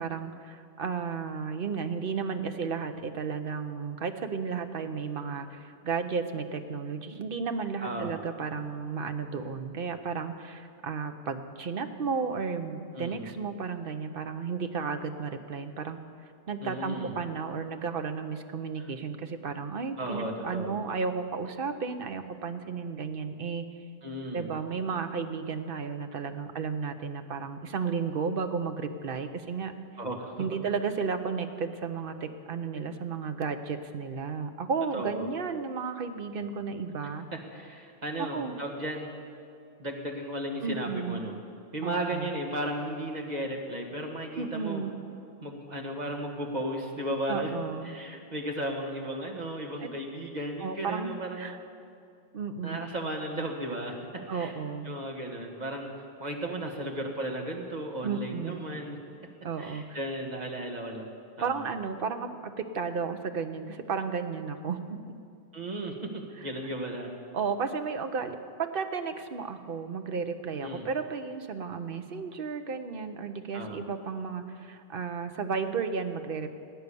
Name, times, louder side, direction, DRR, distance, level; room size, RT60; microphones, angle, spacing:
voice 1, 0.0-16.0 16.5-23.7 24.3-29.7 30.4-37.3 38.2-38.6 40.6-41.2 41.8-42.3 44.4-44.9 47.3-47.9 49.8-49.9 50.6-51.6 52.3-52.8 54.3-54.9 58.0-58.7 59.4-60.0 61.4-62.3 62.7-65.1 66.4-66.5 67.3-76.5, right 5 dB, 60° right, 8 dB, 1.0 m, -33 dB
voice 2, 7.8-8.2 12.9-13.3 16.6-17.1 18.8-18.9 20.0-20.8 24.0-24.5 30.0-30.5 34.9-35.3 37.3-39.1 39.8-41.4 41.7-44.8 45.4-47.5 47.8-51.6 52.6-54.6 54.8-55.9 56.2-59.0 59.6-61.6 65.5-67.1 70.6-70.9 73.5-73.9, right 1 dB, 40° right, 1 dB, 1.7 m, -35 dB
19.5 x 9.4 x 6.9 m, 2.4 s
omnidirectional pair, 1.1 m